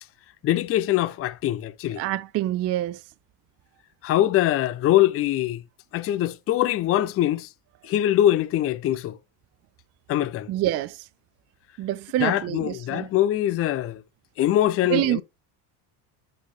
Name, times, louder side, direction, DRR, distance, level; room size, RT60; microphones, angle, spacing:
voice 1, 0.4-2.0 4.0-5.6 5.9-7.5 7.8-9.2 10.1-10.5 12.2-14.0 14.4-15.2, left 13 dB, 35° left, 0.5 m, -23 dB
voice 2, 2.0-3.0 10.5-11.1 11.8-13.1 14.9-15.2, right 14 dB, 35° right, 0.4 m, -26 dB
8.5 x 3.2 x 3.6 m
supercardioid pair, 120°, 44 cm